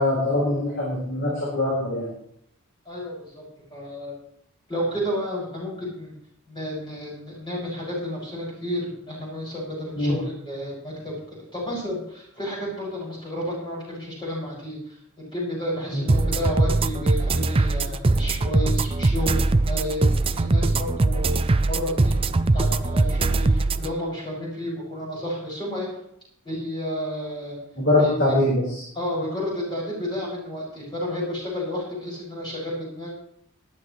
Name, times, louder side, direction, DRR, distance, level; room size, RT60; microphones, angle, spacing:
voice 1, 0.0-2.1 10.0-10.2 15.9-16.0 27.8-28.8, left 1 dB, 55° left, -5 dB, 4.7 m, -22 dB
voice 2, 2.8-4.2 4.7-6.1 6.5-11.2 11.5-15.0 15.3-22.3 22.5-25.9 26.4-27.6 28.0-28.3 28.9-33.1, equal, 20° left, -5 dB, 6.3 m, -31 dB
sound 1, 16.1-23.9, right 2 dB, 25° right, 0.5 m, -21 dB
19.5 x 11.0 x 3.2 m, 0.70 s
head